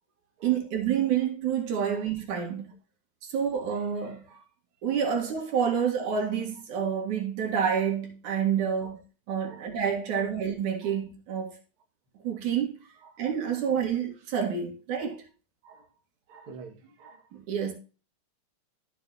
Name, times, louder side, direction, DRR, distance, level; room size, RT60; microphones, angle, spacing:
voice 1, 0.4-2.7 3.2-4.4 4.8-9.0 9.3-11.6 12.2-12.8 13.2-15.3 17.3-17.7, right 8 dB, 75° right, 3.2 m, -28 dB
voice 2, 16.3-17.3, right 5 dB, 50° right, 2.3 m, -48 dB
13.0 x 6.9 x 2.8 m
omnidirectional pair, 3.5 m